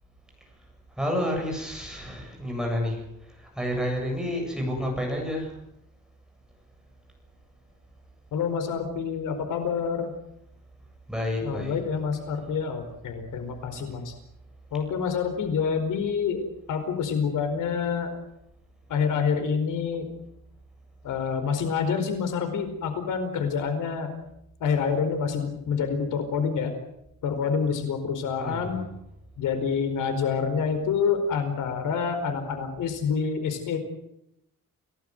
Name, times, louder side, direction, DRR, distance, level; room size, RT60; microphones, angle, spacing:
voice 1, 1.0-3.0 3.4-5.5 11.1-11.8 13.7-14.0 28.4-28.8, left 1 dB, ahead, 0 dB, 7.8 m, -30 dB
voice 2, 8.3-10.1 11.4-14.1 14.7-16.4 16.7-18.1 18.9-20.1 21.0-24.1 24.6-26.7 27.2-28.8 29.4-33.8, left 6 dB, 70° left, 7 dB, 4.8 m, -27 dB
29.0 x 18.0 x 8.0 m, 0.81 s
cardioid pair, 175°, 32 cm